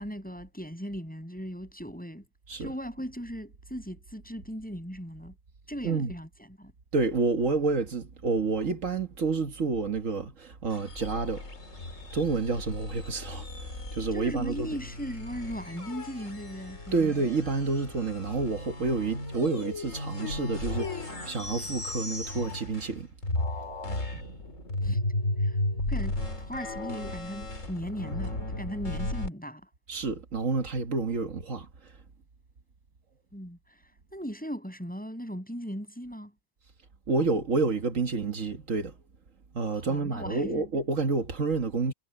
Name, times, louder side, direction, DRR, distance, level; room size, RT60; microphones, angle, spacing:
voice 1, 0.0-2.3 2.6-5.3 5.7-6.7 14.1-17.1 24.8-25.0 25.4-25.6 25.9-29.7 33.3-36.3 39.7-40.7, equal, 5° left, 7.2 m, -38 dB
voice 2, 6.9-11.4 12.1-14.8 16.9-23.1 24.1-24.3 29.9-31.9 37.1-38.9 39.5-41.9, right 4 dB, 75° right, 1.9 m, -29 dB
sound 1, 10.7-23.0 23.2-29.3, left 2 dB, 75° left, 4.3 m, -35 dB
omnidirectional pair, 1.3 m